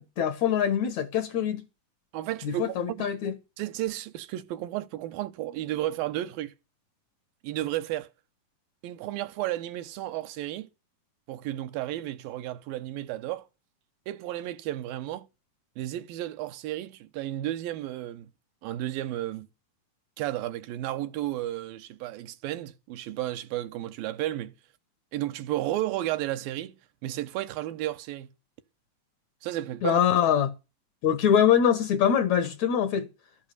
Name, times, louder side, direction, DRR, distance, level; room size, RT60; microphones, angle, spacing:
voice 1, 0.0-1.6 2.4-3.3 29.8-30.5 31.0-33.1, left 9 dB, 65° left, 2.0 m, -24 dB
voice 2, 2.1-3.1 3.6-6.5 7.4-8.1 8.8-10.7 11.3-13.5 14.1-15.3 15.8-18.3 18.6-19.5 20.2-24.5 25.1-28.3 29.4-30.0, right 14 dB, 80° right, 2.6 m, -33 dB
13.5 x 8.7 x 6.7 m
omnidirectional pair, 4.2 m